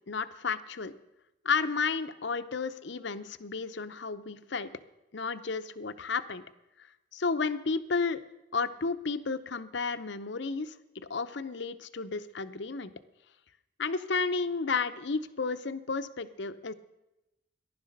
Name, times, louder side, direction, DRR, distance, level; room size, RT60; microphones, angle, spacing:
voice 1, 0.1-0.9 1.4-4.7 5.1-6.4 7.1-8.2 8.5-12.9 13.8-16.7, left 4 dB, 60° left, 12 dB, 0.7 m, -32 dB
14.5 x 11.0 x 6.5 m, 0.94 s
head